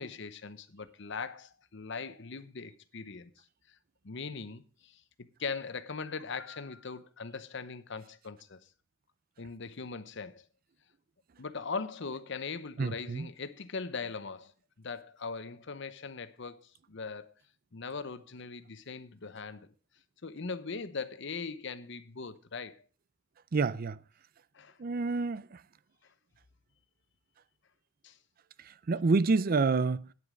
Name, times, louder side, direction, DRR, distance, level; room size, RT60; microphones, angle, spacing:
voice 1, 0.0-3.3 4.0-8.6 9.4-10.4 11.4-14.5 14.8-17.3 17.7-19.7 20.2-22.8 24.5-24.8 28.0-28.2, left 4 dB, 60° left, 0.8 m, -40 dB
voice 2, 12.8-13.3 23.5-24.0 24.8-25.4 28.9-30.0, right 4 dB, 45° right, 0.4 m, -27 dB
9.5 x 8.3 x 6.2 m
head